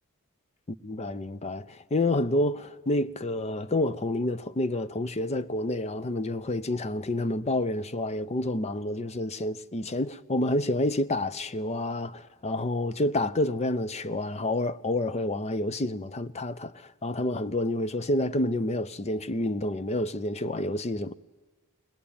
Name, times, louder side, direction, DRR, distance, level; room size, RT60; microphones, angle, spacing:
voice 1, 0.8-21.1, left 1 dB, 30° left, 0.6 m, -29 dB
21.5 x 20.5 x 8.7 m
head